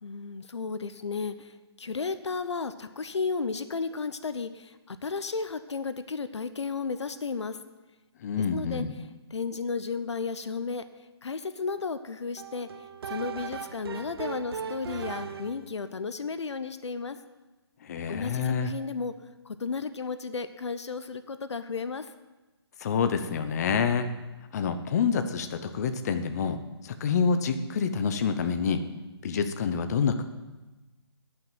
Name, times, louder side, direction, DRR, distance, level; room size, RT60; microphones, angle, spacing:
voice 1, 0.0-7.6 8.5-8.8 9.3-10.8 11.2-17.2 18.1-19.1 19.4-22.1, left 4 dB, 85° left, 12 dB, 0.7 m, -33 dB
voice 2, 8.2-8.9 17.8-18.7 22.8-24.1 24.5-28.8 29.2-30.2, left 6 dB, 35° left, 9 dB, 0.7 m, -27 dB
sound 1, 12.4-15.7, right 6 dB, 60° right, 0.8 m, -38 dB
10.0 x 6.0 x 7.8 m, 1.1 s
hypercardioid pair, 155°, 14 cm